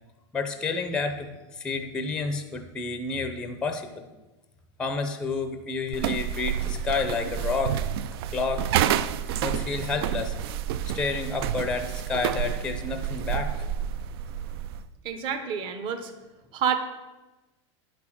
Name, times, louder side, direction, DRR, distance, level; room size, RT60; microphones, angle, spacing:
voice 1, 0.3-4.0 4.8-7.8 8.3-8.7 9.4-10.3 10.9-13.5, left 4 dB, 5° left, 7 dB, 0.6 m, -30 dB
sound 1, 5.9-14.8, right 10 dB, 55° right, 0.4 m, -29 dB
voice 2, 15.0-16.1 16.5-16.8, right 7 dB, 35° right, 9 dB, 1.0 m, -28 dB
10.5 x 6.0 x 5.9 m, 1.1 s
supercardioid pair, 160°, 15 cm